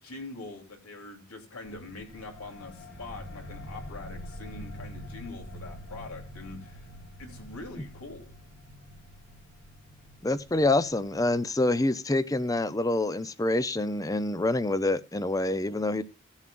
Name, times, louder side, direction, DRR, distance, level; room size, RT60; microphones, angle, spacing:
voice 1, 0.0-6.9 7.2-8.3, left 2 dB, 85° left, 3.2 m, -43 dB
sound 1, 1.6-11.8, equal, 50° left, 1.9 m, -45 dB
voice 2, 10.2-16.0, left 2 dB, 15° left, 0.5 m, -26 dB
18.5 x 7.2 x 2.5 m
head